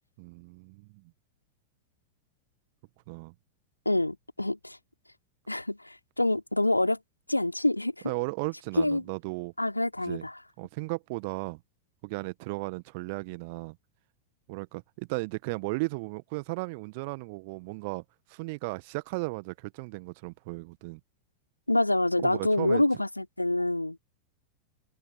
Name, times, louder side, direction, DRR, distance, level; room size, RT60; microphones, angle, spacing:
voice 1, 0.2-1.0 3.1-3.3 8.0-9.5 10.0-10.3 10.6-11.6 12.0-13.8 14.5-21.0 22.2-22.8, right 27 dB, 45° right, 1.2 m, -35 dB
voice 2, 3.8-4.8 5.5-7.0 7.3-7.9 8.8-9.0 9.6-10.3 21.7-24.0, left 1 dB, 85° left, 3.0 m, -26 dB
open air
figure-of-eight pair, 90°, 0 cm